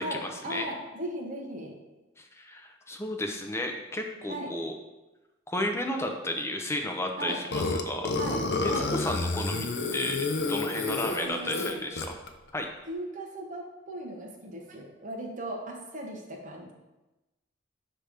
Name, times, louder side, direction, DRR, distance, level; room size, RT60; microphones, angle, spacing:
voice 1, 0.0-1.8 4.2-4.6 7.2-7.4 8.2-8.9 10.9-11.8 12.9-16.7, right 1 dB, 40° right, -1 dB, 1.1 m, -37 dB
voice 2, 2.2-4.7 5.5-8.2 8.9-12.2 12.5-12.7, left 1 dB, 15° left, 3 dB, 0.6 m, -33 dB
Burping eructation, 7.5-12.3, left 3 dB, 60° left, 0.6 m, -30 dB
5.8 x 3.3 x 5.0 m, 1.0 s
head